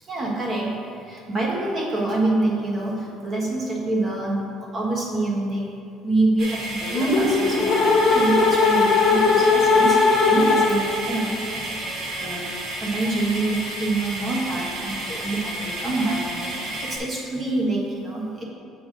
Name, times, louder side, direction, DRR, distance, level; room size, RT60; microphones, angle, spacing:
voice 1, 0.1-5.7 6.0-12.5 12.8-18.4, right 2 dB, 25° right, -2 dB, 1.2 m, -26 dB
sound 1, 6.4-17.0, right 1 dB, 45° right, 1.1 m, -32 dB
sound 2, 6.9-11.0, left 4 dB, 45° left, 1.0 m, -18 dB
7.6 x 3.4 x 6.4 m, 2.5 s
cardioid pair, 165°, 0 cm